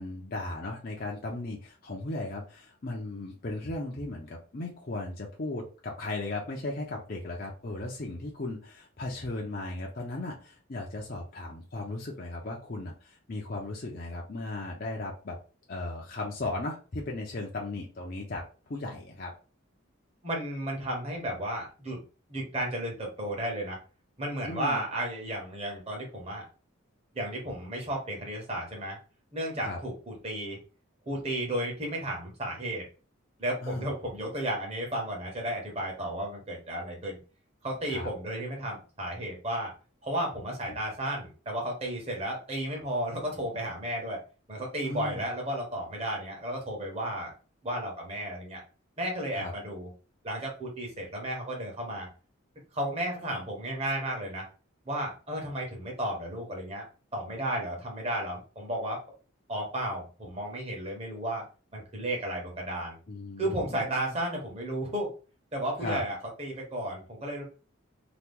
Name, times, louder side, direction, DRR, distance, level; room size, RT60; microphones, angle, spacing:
voice 1, 0.0-15.4 15.7-19.3 24.4-24.8 29.6-29.8 33.6-33.9 37.9-38.1 40.7-40.8 44.8-45.3 49.3-49.5 63.1-64.1 65.8-66.0, left 2 dB, 45° left, -1 dB, 0.6 m, -36 dB
voice 2, 20.2-22.0 22.3-23.8 24.2-26.4 27.1-29.0 29.3-30.6 31.1-32.9 33.4-37.2 37.6-39.7 40.0-44.2 44.5-47.3 47.6-48.6 49.0-49.9 50.2-52.1 52.7-54.5 54.9-56.9 57.1-59.0 59.5-61.4 61.7-63.0 63.4-65.1 65.5-67.4, right 1 dB, 30° right, 0 dB, 1.1 m, -33 dB
2.9 x 2.3 x 3.6 m, 0.35 s
head